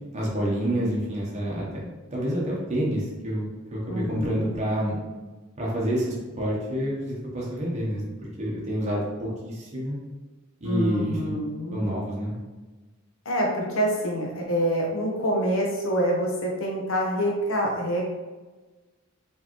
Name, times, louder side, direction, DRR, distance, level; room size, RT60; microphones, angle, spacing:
voice 1, 0.1-4.9 5.6-8.1 8.4-10.0 10.6-11.3 11.7-12.3, equal, 30° right, -4 dB, 0.9 m, -28 dB
voice 2, 3.9-4.5 10.6-11.8 13.2-18.0, equal, 75° left, -1 dB, 1.0 m, -26 dB
4.8 x 3.3 x 3.0 m, 1.3 s
head